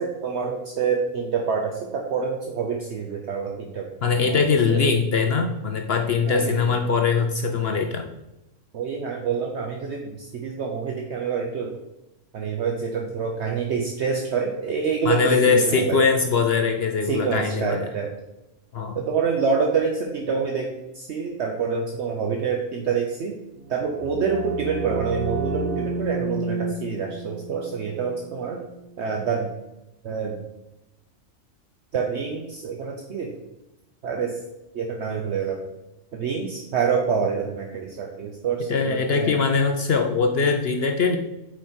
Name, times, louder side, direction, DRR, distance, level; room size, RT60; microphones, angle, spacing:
voice 1, 0.0-3.8 4.2-4.8 6.3-6.8 8.7-11.8 12.3-16.0 17.0-18.1 18.9-20.7 20.9-23.3 23.7-28.6 29.0-29.5 30.0-30.4 31.9-33.3 34.0-34.4 34.7-35.6 36.1-39.4, right 5 dB, 60° right, 1 dB, 1.0 m, -27 dB
voice 2, 4.0-8.1 15.0-17.9 18.7-19.0 38.6-41.2, left 5 dB, 60° left, 5 dB, 0.8 m, -22 dB
sound 1, 23.6-29.2, right 4 dB, 90° right, 1.0 m, -31 dB
7.4 x 4.8 x 4.4 m, 0.95 s
omnidirectional pair, 1.4 m